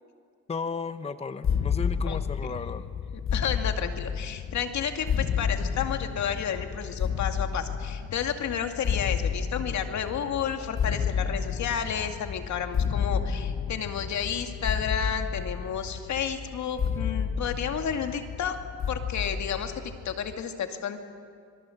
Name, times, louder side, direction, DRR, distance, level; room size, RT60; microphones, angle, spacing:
voice 1, 0.5-2.8, left 5 dB, 20° left, 11 dB, 0.8 m, -34 dB
sound 1, 1.4-20.3, left 7 dB, 45° left, 1.0 m, -31 dB
voice 2, 3.3-18.6 18.9-21.0, left 8 dB, 65° left, 6 dB, 2.3 m, -31 dB
26.0 x 22.0 x 7.9 m, 2.2 s
cardioid pair, 90°, 30 cm